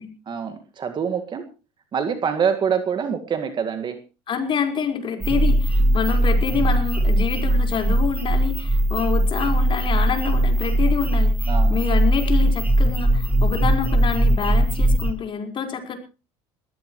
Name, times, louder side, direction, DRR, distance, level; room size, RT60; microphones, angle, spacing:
voice 1, 0.3-1.4 1.9-4.0 5.8-6.0 11.5-11.8, right 7 dB, 40° right, 8 dB, 2.0 m, -25 dB
voice 2, 4.3-16.0, left 6 dB, 40° left, 4 dB, 5.0 m, -27 dB
sound 1, 5.2-15.1, right 1 dB, 10° right, 7.3 m, -20 dB
21.5 x 15.5 x 3.2 m, 0.32 s
supercardioid pair, 100°, 12 cm